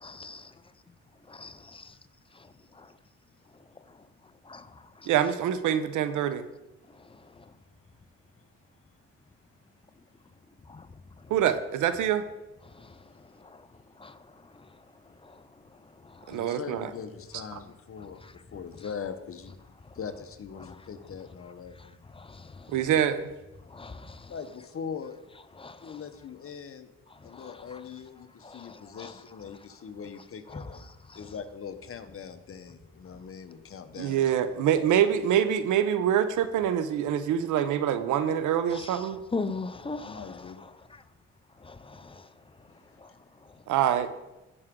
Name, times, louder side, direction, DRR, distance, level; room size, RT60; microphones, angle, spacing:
voice 1, 0.0-0.6 1.3-1.8 2.3-2.9 3.5-4.1 4.4-5.1 6.9-7.5 10.7-11.3 12.6-13.7 13.9-16.6 18.2-18.3 19.8-20.0 20.6-20.8 21.8-22.9 23.6-24.3 25.5-26.0 27.1-27.8 28.4-29.2 30.5-30.8 31.1-31.3 38.7-41.0 41.6-42.3 42.6-43.6, left 3 dB, 20° left, 0.6 m, -43 dB
voice 2, 5.1-6.4 11.3-12.2 16.3-16.9 22.7-23.2 34.0-39.2 43.7-44.1, right 9 dB, 80° right, 0.8 m, -25 dB
voice 3, 16.3-19.5 19.9-22.0 24.3-25.2 25.8-26.9 27.2-30.9 31.1-34.2 34.7-34.9 40.0-40.6 42.7-42.8, left 6 dB, 45° left, 1.1 m, -41 dB
17.0 x 6.1 x 3.8 m
cardioid pair, 90°, 30 cm